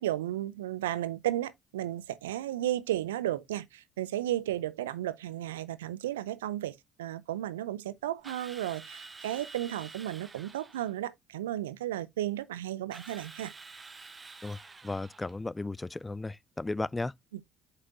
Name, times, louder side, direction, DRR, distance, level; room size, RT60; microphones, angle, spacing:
voice 1, 0.0-13.5, right 13 dB, 80° right, 0.4 m, -34 dB
Drill, 8.2-10.9 12.9-15.4, right 4 dB, 30° right, 1.2 m, -48 dB
voice 2, 14.8-17.1, left 2 dB, 15° left, 0.3 m, -35 dB
7.9 x 5.8 x 2.5 m
hypercardioid pair, 50°, 0 cm